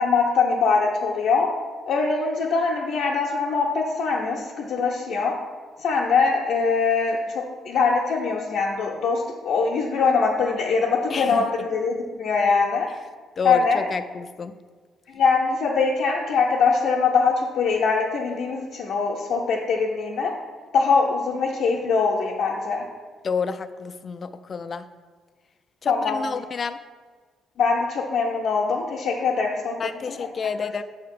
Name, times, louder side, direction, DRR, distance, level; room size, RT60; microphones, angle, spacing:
voice 1, 0.0-1.5 1.9-5.3 5.8-12.9 13.4-13.9 15.1-20.3 20.7-22.8 25.9-26.2 27.6-29.8 30.1-30.2 30.6-30.7, left 4 dB, 75° left, -3 dB, 0.7 m, -22 dB
voice 2, 11.1-11.6 13.4-14.5 23.2-24.8 25.8-26.8 29.8-30.8, left 5 dB, 45° left, 11 dB, 0.3 m, -29 dB
6.4 x 2.8 x 5.2 m, 1.5 s
cardioid pair, 90°, 0 cm